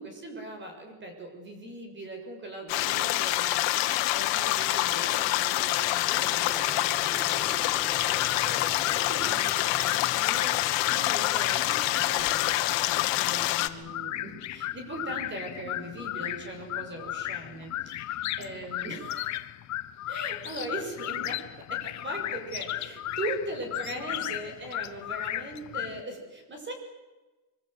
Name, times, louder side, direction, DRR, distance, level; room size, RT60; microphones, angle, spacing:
voice 1, 0.0-3.7 4.1-7.5 7.7-19.5 20.1-26.7, right 1 dB, 25° right, 4 dB, 6.6 m, -40 dB
sound 1, 2.7-13.7, left 17 dB, 85° left, 1.8 m, -26 dB
sound 2, 5.6-13.3, left 1 dB, ahead, 1.9 m, -46 dB
sound 3, 7.9-26.0, left 14 dB, 40° left, 0.9 m, -35 dB
25.0 x 24.5 x 8.2 m, 1.2 s
cardioid pair, 170°, 43 cm